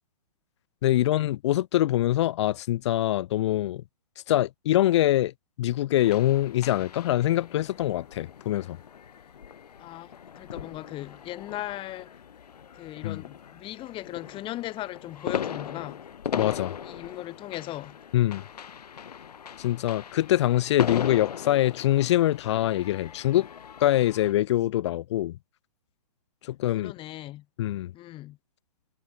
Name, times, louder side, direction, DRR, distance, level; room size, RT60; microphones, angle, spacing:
voice 1, 0.8-3.8 4.3-5.3 5.6-8.8 13.0-13.2 16.4-16.7 18.1-18.4 19.6-23.5 23.8-25.4 26.4-26.9 27.6-27.9, left 14 dB, 45° left, 0.4 m, -24 dB
sound 1, 6.0-24.3, left 8 dB, 70° left, 4.4 m, -38 dB
voice 2, 10.4-12.1 12.7-16.0 16.8-18.0 26.7-27.5 27.9-28.4, left 15 dB, 25° left, 5.5 m, -38 dB
hypercardioid pair, 140°, 21 cm